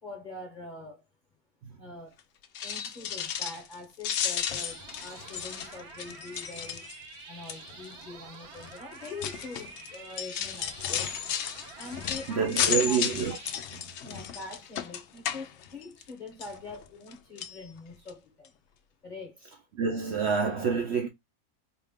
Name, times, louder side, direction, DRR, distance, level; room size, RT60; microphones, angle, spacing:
voice 1, 0.0-1.0 1.8-2.2 2.6-6.9 7.2-11.1 11.7-13.0 14.0-18.5 19.0-19.4, left 3 dB, 35° left, 1.0 m, -44 dB
sound 1, 2.4-3.7 4.0-7.1 7.5-7.8 8.6-16.1 16.4-17.1 17.4-17.6 18.1-18.2 18.4-18.5, left 8 dB, 65° left, 0.7 m, -33 dB
sound 2, 4.4-13.5, right 3 dB, 75° right, 1.5 m, -47 dB
voice 2, 12.3-13.4 19.7-21.1, right 6 dB, 60° right, 0.8 m, -27 dB
4.3 x 2.4 x 3.5 m
omnidirectional pair, 1.6 m